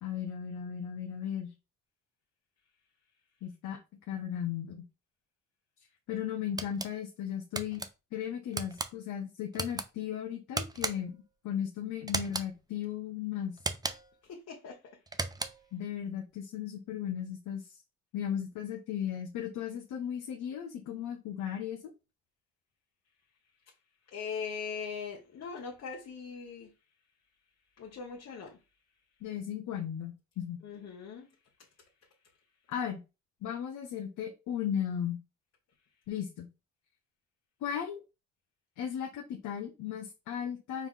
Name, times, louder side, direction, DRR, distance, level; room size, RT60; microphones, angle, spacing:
voice 1, 0.0-1.5 3.4-3.8 4.1-4.8 6.1-7.8 8.1-13.6 15.7-17.6 18.1-21.8 29.2-30.6 32.7-33.0 33.4-35.2 36.1-36.5 37.6-38.0 38.8-40.9, left 9 dB, 80° left, 0.7 m, -36 dB
sound 1, 6.6-6.9 7.5-7.9 8.5-8.9 9.5-9.9 10.5-11.2 12.1-12.5 13.6-14.2 15.1-15.7, right 3 dB, 15° right, 0.4 m, -35 dB
voice 2, 14.3-15.0 24.1-26.7 27.8-28.6 30.6-31.3, left 6 dB, 55° left, 1.0 m, -40 dB
4.7 x 2.4 x 3.6 m
cardioid pair, 90°, 30 cm